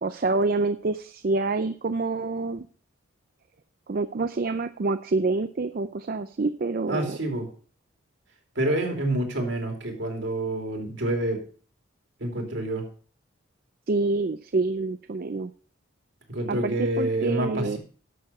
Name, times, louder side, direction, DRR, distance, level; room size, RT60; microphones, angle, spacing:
voice 1, 0.0-2.7 3.9-7.2 13.9-15.5 16.5-17.8, right 3 dB, 45° right, 11 dB, 0.4 m, -27 dB
voice 2, 6.9-7.5 8.5-11.4 12.2-12.9 16.3-17.8, right 1 dB, 60° right, 3 dB, 2.7 m, -27 dB
11.5 x 6.8 x 5.5 m, 0.43 s
head